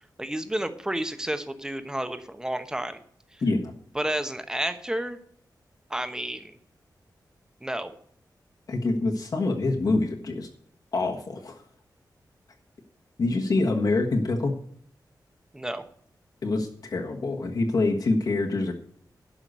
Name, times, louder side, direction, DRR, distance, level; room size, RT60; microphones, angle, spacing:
voice 1, 0.2-3.0 3.9-5.2 5.9-6.6 7.6-7.9 15.5-15.8, right 1 dB, 10° right, 9 dB, 1.0 m, -31 dB
voice 2, 3.4-3.7 8.7-10.5 10.9-11.6 13.2-14.6 16.4-18.7, left 2 dB, 60° left, 0 dB, 1.5 m, -25 dB
12.0 x 5.9 x 8.0 m, 0.63 s
wide cardioid pair, 160°, 7 cm